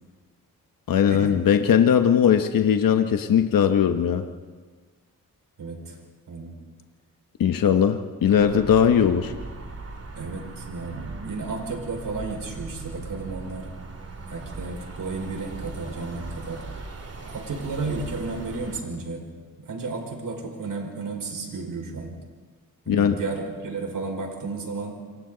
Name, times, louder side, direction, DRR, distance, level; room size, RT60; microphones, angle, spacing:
voice 1, 0.9-4.2 7.4-9.3 22.9-23.2, left 8 dB, 70° left, 7 dB, 1.1 m, -19 dB
voice 2, 5.6-6.0 6.3-6.5 10.2-13.7 14.3-16.6 17.2-19.3 19.6-22.1 22.9-25.0, right 3 dB, 70° right, 2 dB, 5.3 m, -33 dB
sound 1, 8.3-18.8, right 3 dB, 45° right, 2.9 m, -39 dB
28.0 x 24.0 x 4.0 m, 1.5 s
cardioid pair, 75°, 35 cm